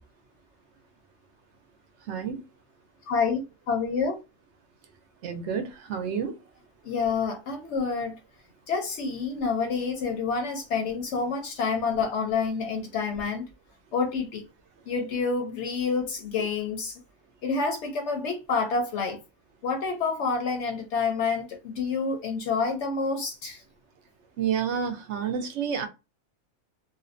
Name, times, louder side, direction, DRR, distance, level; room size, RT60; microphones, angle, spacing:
voice 1, 2.1-2.4 5.2-6.3 24.4-25.9, right 7 dB, 65° right, 0.8 m, -29 dB
voice 2, 3.1-4.2 6.8-8.2 8.7-13.5 13.9-14.4 14.9-17.0 17.4-19.2 19.6-23.6, left 4 dB, 65° left, 0.8 m, -28 dB
2.5 x 2.1 x 2.5 m
omnidirectional pair, 1.4 m